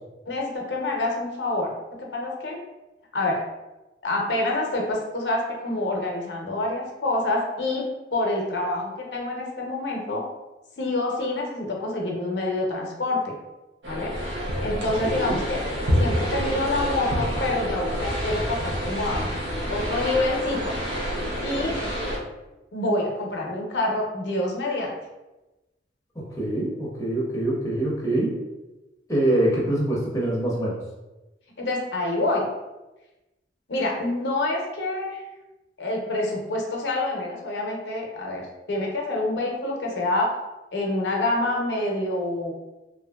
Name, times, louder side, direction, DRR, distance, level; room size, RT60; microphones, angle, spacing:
voice 1, 0.3-1.7 2.0-2.6 3.1-3.4 4.0-7.8 8.1-10.2 10.8-13.3 13.9-14.1 14.6-15.6 16.0-19.3 19.7-20.7 21.4-21.7 22.7-24.9 31.6-32.5 33.7-35.2 35.8-38.4 38.7-40.3 40.7-42.5, left 2 dB, 75° left, -1 dB, 0.6 m, -27 dB
sound 1, 13.8-22.2, equal, 85° right, 0.7 m, -28 dB
voice 2, 15.0-15.4 26.2-28.4 29.1-30.8, right 1 dB, 20° left, -4 dB, 0.5 m, -24 dB
2.8 x 2.5 x 2.2 m, 1.0 s
head